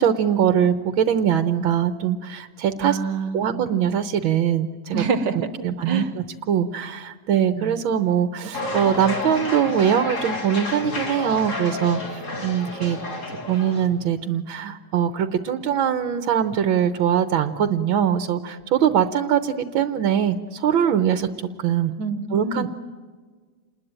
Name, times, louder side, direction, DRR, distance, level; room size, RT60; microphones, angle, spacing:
voice 1, 0.0-3.0 3.3-5.1 5.6-13.0 13.5-21.3 21.6-21.9 22.3-22.7, right 9 dB, 80° right, 9 dB, 1.8 m, -22 dB
voice 2, 2.8-3.6 4.9-6.1 7.5-7.7 22.0-22.7, right 5 dB, 65° right, 10 dB, 1.9 m, -27 dB
sound 1, 8.5-13.9, left 2 dB, 40° left, 2.9 m, -30 dB
28.5 x 20.5 x 9.0 m, 1.5 s
omnidirectional pair, 2.2 m